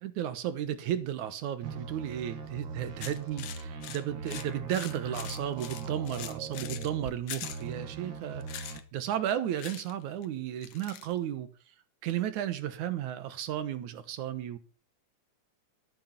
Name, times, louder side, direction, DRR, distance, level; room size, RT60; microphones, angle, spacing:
voice 1, 0.0-11.7 12.0-14.6, right 10 dB, 75° right, 2.5 m, -34 dB
sound 1, 1.6-7.1 7.4-8.8, right 4 dB, 50° right, 1.6 m, -40 dB
sound 2, 3.0-6.9 7.3-7.6 8.4-8.8 9.6-9.9 10.2-10.3 10.6-11.1, left 11 dB, 65° left, 1.8 m, -42 dB
13.0 x 10.5 x 5.8 m
omnidirectional pair, 3.6 m